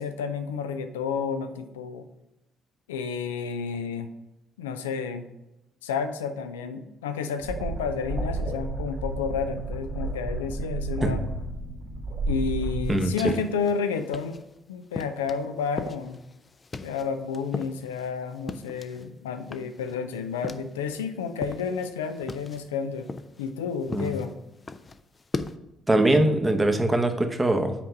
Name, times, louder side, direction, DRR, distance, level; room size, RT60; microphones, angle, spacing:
voice 1, 0.0-2.0 2.9-4.1 4.6-5.2 5.8-11.2 12.3-14.4 14.7-16.2 16.8-23.1 23.4-24.3, left 6 dB, 85° left, 8 dB, 0.4 m, -31 dB
sound 1, 7.4-13.0, right 2 dB, 60° right, 1.7 m, -31 dB
sound 2, 12.8-14.5 14.9-19.1 19.4-21.1 21.3-25.6, left 3 dB, 35° left, 0.5 m, -38 dB
voice 2, 12.9-13.3 23.9-24.1 25.9-27.7, right 1 dB, 20° right, 5 dB, 1.0 m, -22 dB
5.9 x 4.5 x 5.2 m, 0.94 s
hypercardioid pair, 45°, 0 cm